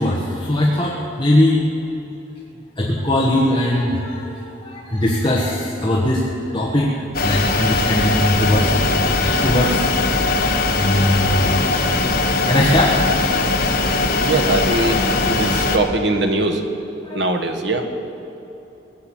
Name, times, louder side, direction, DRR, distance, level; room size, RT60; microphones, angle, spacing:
voice 1, 0.0-1.7 2.8-7.0 7.2-8.9 9.2-9.9 10.8-11.6 11.9-12.1 12.4-13.0 17.0-17.2, left 1 dB, 25° left, -3 dB, 1.4 m, -20 dB
sound 1, 7.1-15.8, left 3 dB, 50° left, 1.3 m, -20 dB
voice 2, 14.2-15.0 15.3-16.6 17.1-17.8, right 2 dB, 70° right, 4 dB, 1.5 m, -21 dB
18.5 x 8.1 x 8.8 m, 3.0 s
head